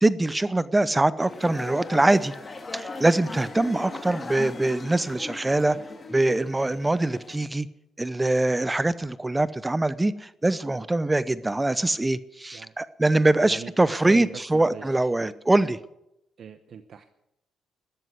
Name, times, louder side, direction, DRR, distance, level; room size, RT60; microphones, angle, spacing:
voice 1, 0.0-2.3 2.7-5.8 6.1-7.7 8.0-15.8, right 2 dB, 15° right, 0.8 m, -23 dB
sound 1, 1.2-7.5, left 3 dB, 30° left, 2.6 m, -38 dB
voice 2, 13.4-15.1 16.4-17.0, right 7 dB, 60° right, 1.0 m, -41 dB
13.5 x 12.5 x 8.3 m
cardioid pair, 90°, 0 cm